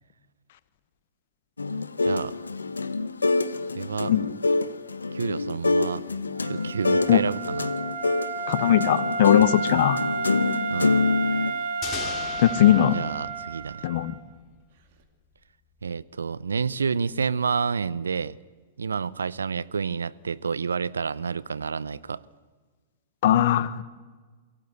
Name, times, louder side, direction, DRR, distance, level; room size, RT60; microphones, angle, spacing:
sound 1, 1.6-11.5, left 3 dB, 90° left, 0.8 m, -26 dB
voice 1, 2.0-2.3 3.7-4.1 5.1-6.0 6.4-7.8 10.7-11.1 12.9-13.9 15.8-18.4 18.8-22.2, right 5 dB, 80° right, 0.6 m, -29 dB
Wind instrument woodwind instrument, 6.4-14.2, right 4 dB, 60° right, 2.5 m, -31 dB
voice 2, 8.5-10.0 12.4-13.0 13.8-14.2 23.2-23.8, left 11 dB, 60° left, 1.1 m, -20 dB
sound 2, 11.8-14.6, left 7 dB, 30° left, 3.2 m, -38 dB
23.0 x 16.0 x 8.1 m
hypercardioid pair, 105°, 0 cm